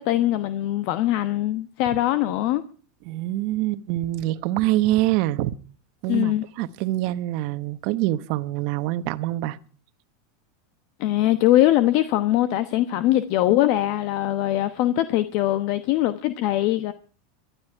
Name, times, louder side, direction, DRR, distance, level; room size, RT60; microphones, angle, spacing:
voice 1, 0.0-2.6 6.1-6.4 11.0-16.9, left 14 dB, 55° left, 1.0 m, -22 dB
voice 2, 3.1-5.5 6.0-9.6, right 15 dB, 55° right, 1.0 m, -25 dB
23.5 x 12.0 x 4.6 m
supercardioid pair, 125°, 0 cm